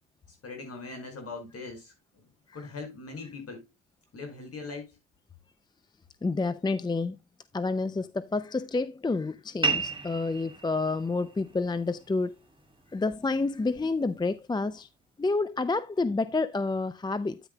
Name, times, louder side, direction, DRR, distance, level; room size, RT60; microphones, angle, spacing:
voice 1, 0.4-1.9 2.5-3.7 4.1-5.0, left 3 dB, 50° left, 5.1 m, -40 dB
voice 2, 6.2-7.2 7.5-12.3 12.9-14.9 15.2-17.4, left 3 dB, 15° left, 0.5 m, -29 dB
sound 1, 9.6-14.7, right 4 dB, 15° right, 2.0 m, -36 dB
9.9 x 9.7 x 2.2 m
cardioid pair, 90°, 30 cm